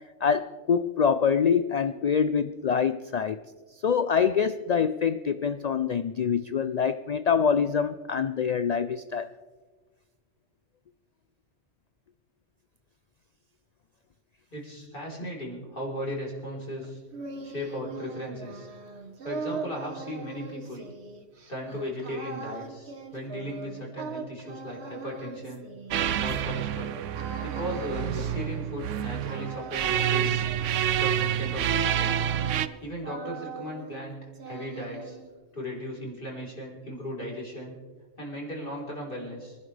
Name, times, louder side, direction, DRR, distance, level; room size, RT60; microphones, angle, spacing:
voice 1, 0.2-3.4 3.8-9.3, left 6 dB, 75° left, 0.3 m, -25 dB
voice 2, 14.5-17.0 17.4-18.7 19.2-20.8 21.5-25.6 26.2-27.0 27.4-30.4 31.0-32.2 32.8-35.2 35.5-37.8 38.2-39.6, equal, 45° left, 4.2 m, -37 dB
sound 1, 16.8-26.7 27.1-29.0 29.3-32.8 33.0-34.1 34.3-35.3, right 4 dB, 60° right, 1.5 m, -41 dB
sound 2, 25.9-32.7, right 10 dB, 85° right, 1.0 m, -28 dB
25.0 x 11.5 x 3.3 m
omnidirectional pair, 1.2 m